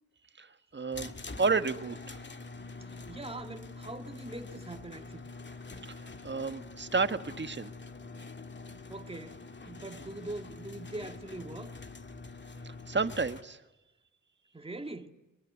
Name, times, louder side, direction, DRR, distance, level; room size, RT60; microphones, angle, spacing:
voice 1, 0.4-2.2 5.9-7.7 12.6-13.6, right 4 dB, 35° right, 1.7 m, -32 dB
sound 1, 0.9-13.4, left 3 dB, 35° left, 2.2 m, -45 dB
voice 2, 2.8-5.3 8.9-11.8 14.5-15.1, right 2 dB, 20° right, 2.1 m, -43 dB
23.5 x 23.0 x 9.5 m
cardioid pair, 60°, 30 cm